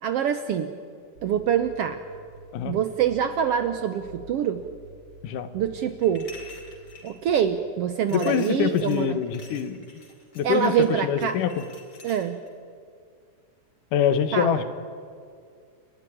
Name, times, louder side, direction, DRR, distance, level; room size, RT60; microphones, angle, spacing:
voice 1, 0.0-0.7 1.2-2.0 2.6-4.6 5.5-6.3 7.0-9.2 10.4-11.4 12.0-12.4 14.3-14.6, right 9 dB, 70° right, 10 dB, 1.4 m, -25 dB
sound 1, 1.2-7.7, right 2 dB, 40° right, 4.0 m, -49 dB
sound 2, 6.0-7.1 8.1-12.5, left 4 dB, 45° left, 4.2 m, -48 dB
voice 2, 8.1-9.8 10.4-11.6 13.9-14.6, left 8 dB, 85° left, 11 dB, 2.7 m, -25 dB
29.5 x 12.5 x 9.8 m, 2.2 s
omnidirectional pair, 3.5 m